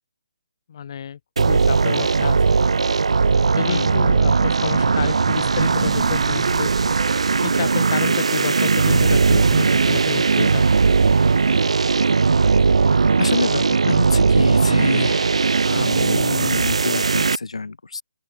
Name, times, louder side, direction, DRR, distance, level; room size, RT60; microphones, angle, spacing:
voice 1, 0.7-2.7 3.3-6.7 7.4-10.9, left 8 dB, 45° left, 7.7 m, -30 dB
sound 1, 1.4-17.4, right 4 dB, 80° right, 0.4 m, -18 dB
voice 2, 3.6-4.1 13.2-18.0, left 4 dB, 85° left, 5.7 m, -27 dB
sound 2, 3.9-8.1, right 6 dB, 55° right, 7.4 m, -27 dB
open air
hypercardioid pair, 155°, 3 cm